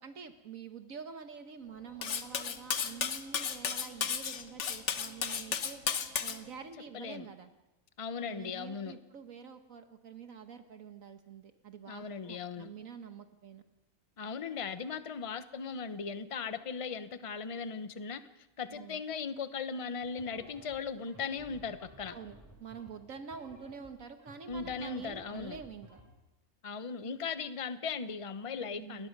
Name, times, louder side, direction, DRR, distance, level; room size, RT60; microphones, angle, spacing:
voice 1, 0.0-5.8 6.2-7.5 8.2-13.6 18.7-19.0 22.1-26.0 28.7-29.1, right 6 dB, 70° right, 8 dB, 1.5 m, -47 dB
Cutlery silverware, 2.0-6.4, left 7 dB, 55° left, 1.3 m, -34 dB
voice 2, 6.9-7.3 8.0-9.0 11.9-12.7 14.2-18.2 18.6-22.2 24.5-25.6 26.6-29.1, left 5 dB, 30° left, 11 dB, 0.8 m, -38 dB
sound 1, 20.0-26.0, equal, 10° right, 7.2 m, -54 dB
29.5 x 20.5 x 5.3 m, 0.97 s
omnidirectional pair, 1.5 m